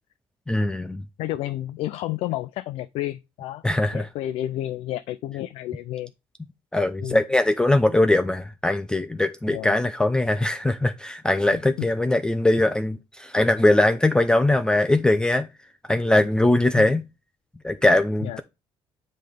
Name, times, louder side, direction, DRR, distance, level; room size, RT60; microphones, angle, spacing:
voice 1, 0.5-1.0 3.6-4.1 6.7-15.5 15.9-17.0 17.6-18.4, left 1 dB, 10° left, 0.4 m, -21 dB
voice 2, 1.2-3.6 3.9-6.1 7.0-7.2 9.5-9.8 11.8-11.9 16.8-17.0 18.2-18.4, left 14 dB, 85° left, 0.4 m, -31 dB
7.7 x 3.2 x 5.1 m
cardioid pair, 140°, 10 cm